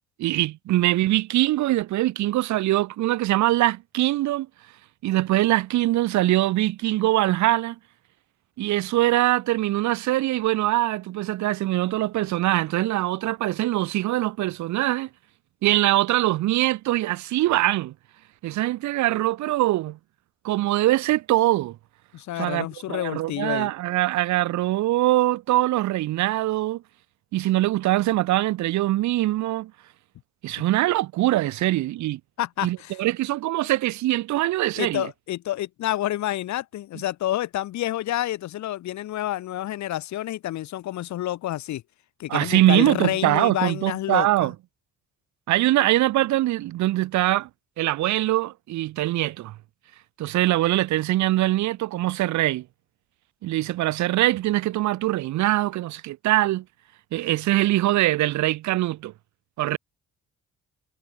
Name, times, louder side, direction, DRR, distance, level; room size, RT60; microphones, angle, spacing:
voice 1, 0.2-4.5 5.0-7.8 8.6-15.1 15.6-17.9 18.4-20.0 20.4-21.8 22.4-26.8 27.3-29.7 30.4-32.2 32.6-35.1 42.3-44.5 45.5-47.5 47.8-49.5 50.2-52.6 53.4-56.6 57.1-59.1 59.6-59.8, right 16 dB, 70° right, 0.6 m, -23 dB
voice 2, 22.1-23.7 32.4-33.0 34.8-41.8 42.2-44.5, left 14 dB, 65° left, 0.8 m, -29 dB
cardioid pair, 90°, 30 cm